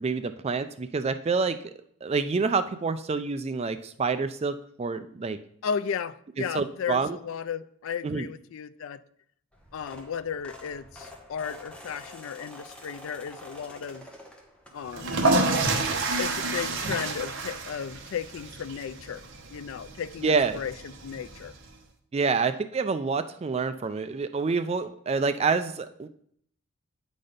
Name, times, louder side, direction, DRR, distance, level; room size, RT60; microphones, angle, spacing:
voice 1, 0.0-1.6 2.0-5.4 6.5-7.2 8.0-8.3 20.2-20.6 22.1-26.1, right 4 dB, 30° right, 10 dB, 0.3 m, -27 dB
voice 2, 5.6-9.0 9.7-14.0 14.7-15.1 16.2-19.2 19.5-21.5, left 7 dB, 60° left, 13 dB, 0.3 m, -34 dB
sound 1, 9.5-15.2 15.6-15.9 17.1-17.2 17.4-17.6 17.9-18.0, left 1 dB, 5° left, 1.1 m, -47 dB
sound 2, 14.9-21.7, right 2 dB, 55° right, 1.0 m, -29 dB
8.6 x 4.1 x 5.1 m, 0.65 s
head